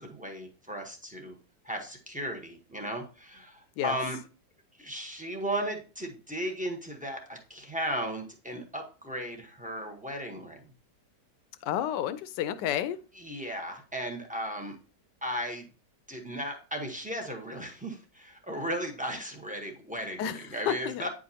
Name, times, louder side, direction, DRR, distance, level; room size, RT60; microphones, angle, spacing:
voice 1, 0.0-1.4 1.6-4.2 4.8-10.7 13.1-14.8 15.2-15.7 16.1-21.1, equal, 5° right, 0.6 m, -36 dB
voice 2, 11.6-13.0 20.2-20.4 20.7-21.1, left 10 dB, 85° left, 1.2 m, -30 dB
9.0 x 5.0 x 2.7 m
omnidirectional pair, 1.8 m